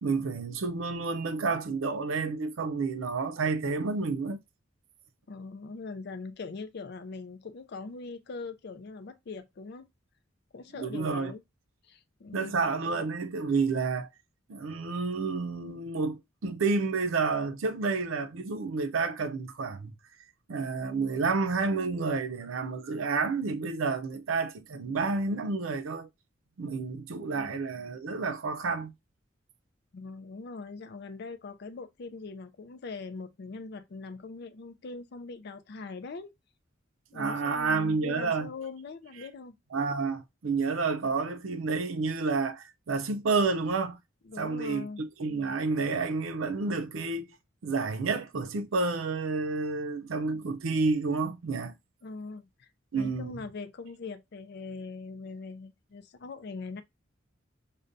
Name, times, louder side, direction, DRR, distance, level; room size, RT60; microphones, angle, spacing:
voice 1, 0.0-4.4 10.8-11.3 12.3-14.1 14.5-19.9 20.5-26.1 26.6-28.9 37.1-38.5 39.7-44.0 44.4-47.3 47.6-51.7 52.9-53.4, right 4 dB, 85° right, 0.5 m, -30 dB
voice 2, 5.3-9.9 10.5-11.4 11.8-12.5 27.2-27.5 29.9-36.3 37.1-39.6 44.2-45.0 52.0-56.8, left 4 dB, 55° left, 0.4 m, -42 dB
6.5 x 2.2 x 2.5 m
head